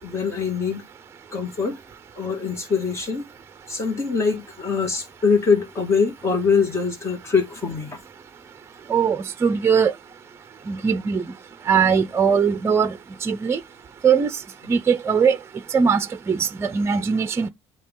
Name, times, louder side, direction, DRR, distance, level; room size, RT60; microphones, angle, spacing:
voice 1, 0.0-0.9 1.3-1.8 2.2-3.3 3.7-8.0, left 5 dB, 30° left, 2.0 m, -23 dB
voice 2, 8.9-9.9 10.7-11.3 11.7-13.0 13.2-13.6 14.0-14.3 14.7-15.4 15.7-17.5, right 6 dB, 25° right, 0.6 m, -20 dB
8.4 x 2.9 x 3.8 m
cardioid pair, 130°, 10 cm